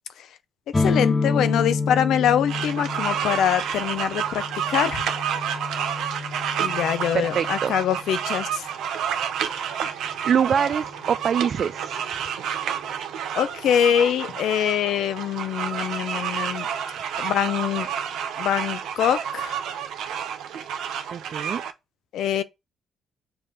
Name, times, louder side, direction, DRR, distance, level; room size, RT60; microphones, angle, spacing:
sound 1, 0.7-8.3, left 3 dB, 20° left, 0.8 m, -29 dB
voice 1, 0.8-4.4 4.7-5.1 6.6-8.7 13.3-16.7 17.2-17.9 18.4-19.6 22.1-22.4, left 9 dB, 80° left, 0.7 m, -24 dB
sound 2, 2.5-21.7, right 8 dB, 80° right, 0.8 m, -30 dB
voice 2, 7.1-7.7 10.0-12.0 21.1-21.6, right 7 dB, 55° right, 0.4 m, -24 dB
6.9 x 2.6 x 5.3 m
cardioid pair, 90°, 0 cm